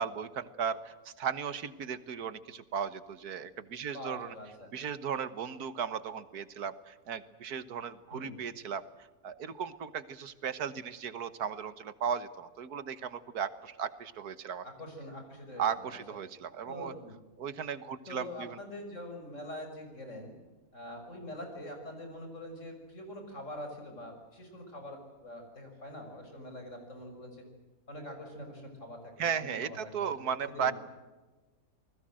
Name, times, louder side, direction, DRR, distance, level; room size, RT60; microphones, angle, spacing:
voice 1, 0.0-4.3 4.7-8.8 9.2-14.6 15.6-16.9 17.4-18.6 29.2-30.7, right 7 dB, 85° right, 13 dB, 1.8 m, -36 dB
voice 2, 3.9-4.7 8.1-8.4 14.6-16.0 16.6-17.2 18.1-20.3 20.7-27.4 27.9-30.2 30.5-30.7, left 1 dB, 55° left, 4 dB, 6.6 m, -44 dB
28.5 x 20.5 x 7.7 m, 1.2 s
omnidirectional pair, 1.6 m